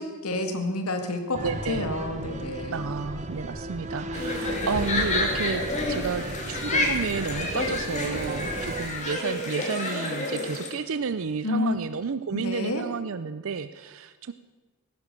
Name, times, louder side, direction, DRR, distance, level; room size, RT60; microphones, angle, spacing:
voice 1, 0.0-2.8 11.4-11.8 12.3-12.8, left 2 dB, 80° left, 6 dB, 2.1 m, -29 dB
sound 1, 1.3-8.9, right 1 dB, 30° right, 1.0 m, -35 dB
voice 2, 1.4-1.9 2.7-5.6 5.9-14.3, right 5 dB, 60° right, 11 dB, 0.5 m, -31 dB
sound 2, 4.1-10.7, left 2 dB, 30° left, 2.7 m, -29 dB
17.5 x 10.5 x 6.7 m, 1.3 s
head